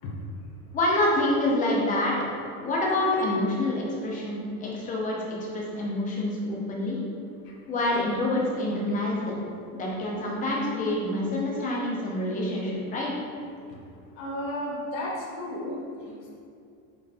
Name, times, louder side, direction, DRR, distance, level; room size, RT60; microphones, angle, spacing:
voice 1, 0.7-2.1 2.6-7.0 7.7-9.4 9.7-13.1, left 1 dB, 20° left, -3 dB, 0.9 m, -27 dB
voice 2, 7.4-7.9 13.7-13.8 14.1-16.3, left 1 dB, 55° left, -2 dB, 1.4 m, -34 dB
5.5 x 4.6 x 4.3 m, 2.4 s
cardioid pair, 175°, 42 cm